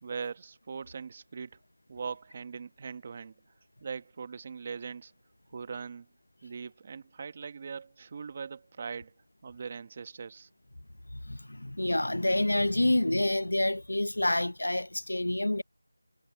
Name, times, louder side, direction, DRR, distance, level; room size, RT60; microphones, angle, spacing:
voice 1, 0.0-1.6 1.9-3.3 3.8-5.1 5.5-6.1 6.4-9.1 9.4-10.5, right 5 dB, 15° right, 1.2 m, -40 dB
voice 2, 11.1-15.6, left 1 dB, 80° left, 0.7 m, -28 dB
figure-of-eight pair, 180°, 0 cm